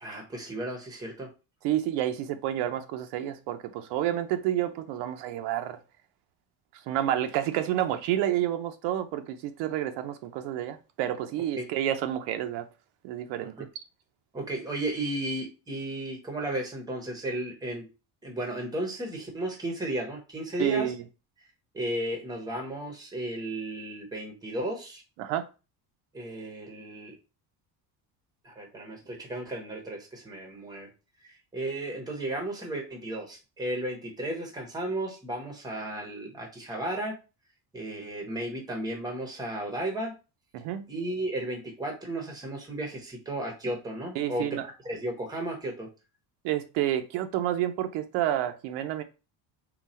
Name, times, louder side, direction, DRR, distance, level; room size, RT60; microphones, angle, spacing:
voice 1, 0.0-1.3 11.6-11.7 13.6-13.7 14.3-17.8 18.2-20.9 21.7-25.0 26.1-27.1 28.4-30.9 31.2-37.1 37.7-40.1 40.9-45.9, right 1 dB, 10° right, 0.9 m, -34 dB
voice 2, 1.6-5.8 6.9-12.7 13.0-13.5 20.6-21.0 25.2-25.5 40.5-40.9 44.1-44.6 46.4-49.0, right 12 dB, 85° right, 0.7 m, -29 dB
3.9 x 2.3 x 4.2 m
cardioid pair, 175°, 40 cm